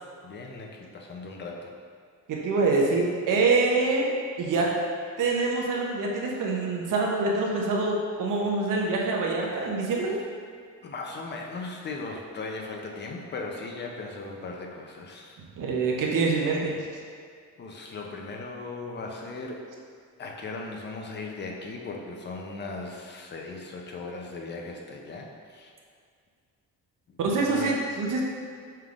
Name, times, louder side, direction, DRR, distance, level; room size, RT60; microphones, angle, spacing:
voice 1, 0.2-1.7 10.8-15.4 17.6-19.6 20.2-25.7 27.1-27.8, left 3 dB, 30° left, 1 dB, 0.5 m, -38 dB
voice 2, 2.3-4.1 4.4-4.7 5.2-10.2 15.6-16.7 27.2-28.2, right 3 dB, 65° right, -2 dB, 0.7 m, -25 dB
5.5 x 3.3 x 2.4 m, 2.2 s
cardioid pair, 125°, 35 cm